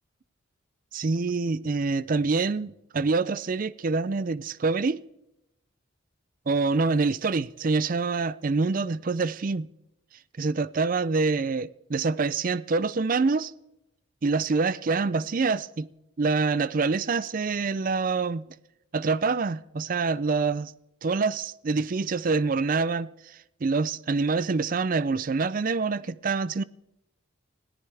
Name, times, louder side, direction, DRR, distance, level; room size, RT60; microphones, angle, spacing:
voice 1, 0.9-5.0 6.5-9.7 10.4-13.5 14.2-15.9 16.2-18.5 18.9-20.7 21.0-26.6, right 4 dB, 45° right, 0.4 m, -26 dB
20.5 x 14.5 x 3.4 m
head